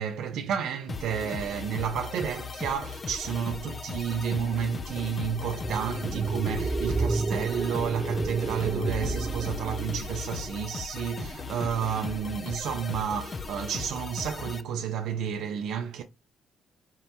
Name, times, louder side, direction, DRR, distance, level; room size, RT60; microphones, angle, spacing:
voice 1, 0.0-16.0, right 7 dB, 80° right, 0.6 m, -31 dB
sound 1, 0.9-14.6, left 4 dB, 35° left, 0.4 m, -38 dB
sound 2, 5.5-10.4, right 4 dB, 35° right, 0.3 m, -31 dB
4.6 x 2.2 x 4.1 m
cardioid pair, 90°, 0 cm